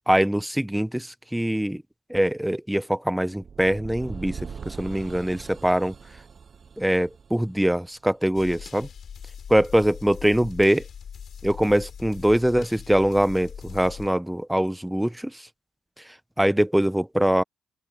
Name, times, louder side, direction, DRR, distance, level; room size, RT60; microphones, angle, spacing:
voice 1, 0.1-1.8 2.1-5.9 6.8-8.9 9.5-10.8 11.4-15.4 16.4-17.4, right 1 dB, 5° right, 0.8 m, -23 dB
sound 1, 3.4-8.4, right 6 dB, 45° right, 7.4 m, -41 dB
sound 2, 8.3-14.1, left 7 dB, 55° left, 7.9 m, -41 dB
open air
cardioid pair, 90°, 0 cm